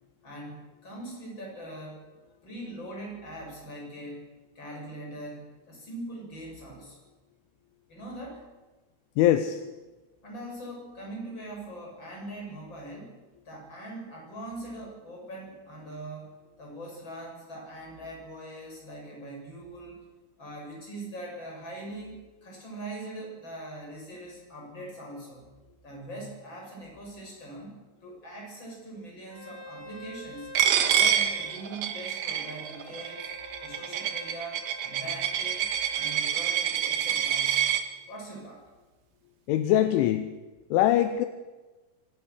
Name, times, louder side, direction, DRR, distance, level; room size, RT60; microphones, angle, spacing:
voice 1, 0.2-2.0 2.4-4.3 4.5-7.0 7.9-8.4 10.2-13.2 13.4-16.3 16.6-20.0 20.4-25.5 25.8-30.5 30.9-33.3 33.6-37.7 38.1-38.6, right 1 dB, 20° left, -2 dB, 8.3 m, -42 dB
voice 2, 9.2-9.8 39.5-40.3 40.7-41.3, left 12 dB, 80° left, 9 dB, 3.2 m, -23 dB
Bowed string instrument, 29.3-36.2, equal, 5° left, 3.6 m, -48 dB
Coin (dropping), 30.6-37.8, right 9 dB, 65° right, 2.5 m, -27 dB
25.5 x 17.5 x 6.4 m, 1.2 s
omnidirectional pair, 5.7 m